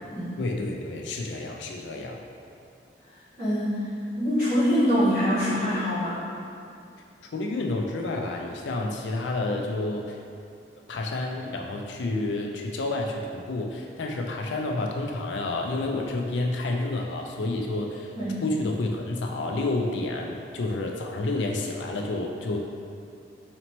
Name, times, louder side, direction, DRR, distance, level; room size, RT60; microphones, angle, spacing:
voice 1, 0.4-2.2 7.3-10.2 10.9-18.1 18.4-22.6, left 2 dB, 90° left, 1 dB, 0.4 m, -29 dB
voice 2, 3.1-3.9 4.2-6.2 18.2-18.4, equal, 20° left, -20 dB, 1.5 m, -24 dB
4.1 x 2.9 x 3.0 m, 2.5 s
head